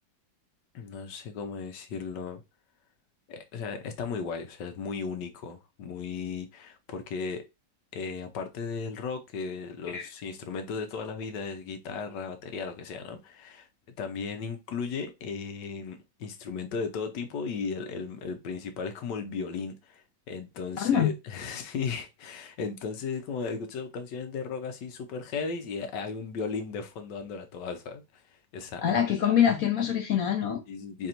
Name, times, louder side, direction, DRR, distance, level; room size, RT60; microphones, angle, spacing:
voice 1, 0.7-2.4 3.3-7.4 7.9-13.7 14.0-29.0 30.7-31.1, left 5 dB, 80° left, 1.3 m, -36 dB
voice 2, 20.8-21.1 28.8-30.6, left 9 dB, 65° left, 0.9 m, -24 dB
3.4 x 2.6 x 4.2 m
omnidirectional pair, 1.9 m